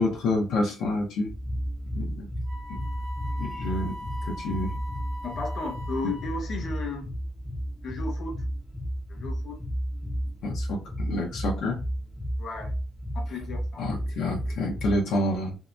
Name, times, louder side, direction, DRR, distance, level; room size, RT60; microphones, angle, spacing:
voice 1, 0.0-1.3 1.9-2.3 2.7-2.8 3.4-4.0 4.2-4.8 10.4-11.8 13.3-13.4 13.8-15.6, left 1 dB, 80° left, -1 dB, 0.6 m, -28 dB
sound 1, 1.3-15.0, equal, 15° left, 0.4 m, -33 dB
Wind instrument woodwind instrument, 2.4-6.6, left 1 dB, 65° right, 0.8 m, -41 dB
voice 2, 5.2-7.1 7.8-8.4 9.1-9.6 12.4-12.7 13.1-13.8, left 3 dB, 45° left, 0 dB, 0.9 m, -34 dB
2.7 x 2.1 x 2.4 m, 0.33 s
cardioid pair, 140°, 0 cm